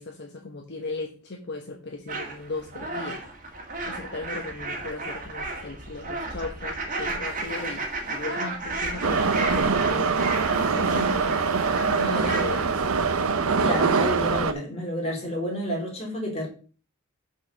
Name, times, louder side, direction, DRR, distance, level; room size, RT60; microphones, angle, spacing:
voice 1, 0.0-3.2 3.9-10.2 10.5-11.3 11.9-12.9, left 2 dB, 55° left, 1.2 m, -36 dB
sound 1, 2.1-12.5, right 2 dB, 40° right, 1.9 m, -33 dB
Subway metro underground, 9.0-14.5, right 5 dB, 85° right, 0.8 m, -23 dB
voice 2, 13.6-16.5, equal, 30° left, 3.4 m, -29 dB
6.6 x 4.7 x 6.7 m
head